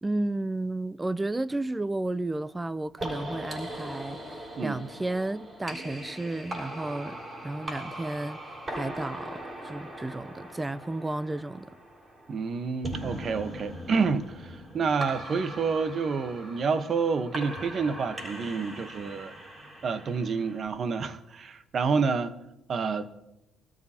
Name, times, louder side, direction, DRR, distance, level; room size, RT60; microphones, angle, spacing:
voice 1, 0.0-7.2 7.4-8.4 8.7-11.7, right 2 dB, 15° right, 0.5 m, -32 dB
sound 1, 3.0-20.7, right 1 dB, 30° right, 6.6 m, -40 dB
voice 2, 12.3-19.3 19.8-22.3 22.7-23.1, right 5 dB, 50° right, 1.1 m, -28 dB
24.5 x 14.0 x 2.9 m
supercardioid pair, 75°, 0 cm